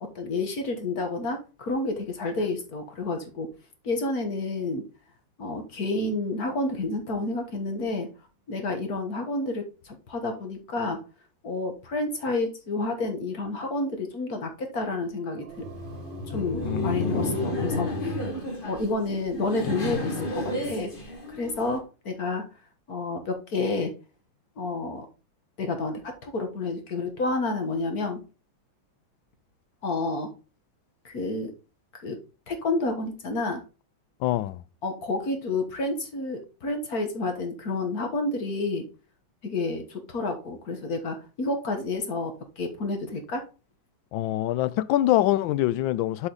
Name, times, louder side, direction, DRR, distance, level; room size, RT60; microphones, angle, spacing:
voice 1, 0.0-3.5 3.8-4.9 5.4-8.1 8.5-11.0 11.4-15.7 16.3-17.9 18.6-20.9 21.3-22.5 22.9-23.9 24.6-25.1 25.6-28.2 29.8-30.3 31.1-31.5 31.9-32.2 32.5-33.6 34.8-38.9 39.4-43.5, left 2 dB, 50° left, 1.7 m, -30 dB
sound 1, 14.9-17.6, right 9 dB, 65° right, 1.8 m, -48 dB
Laughter, 15.5-21.8, left 1 dB, 30° left, 1.5 m, -31 dB
voice 2, 16.6-17.5 34.2-34.6 44.1-46.3, left 14 dB, 75° left, 1.3 m, -25 dB
8.3 x 5.0 x 4.0 m
omnidirectional pair, 2.2 m